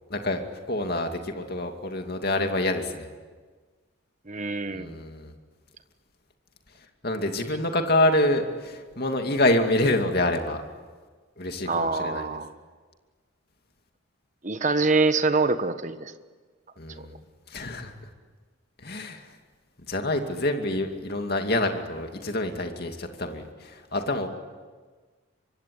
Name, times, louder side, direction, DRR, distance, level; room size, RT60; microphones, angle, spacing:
voice 1, 0.1-3.1 4.7-5.3 7.0-10.6 11.4-12.4 16.8-17.2 17.5-17.9 18.8-19.3 19.9-24.3, left 1 dB, 50° left, 4 dB, 2.5 m, -27 dB
voice 2, 4.3-5.0 11.6-12.5 14.4-16.1, right 3 dB, 35° right, 10 dB, 1.3 m, -25 dB
25.0 x 23.5 x 9.6 m, 1.4 s
head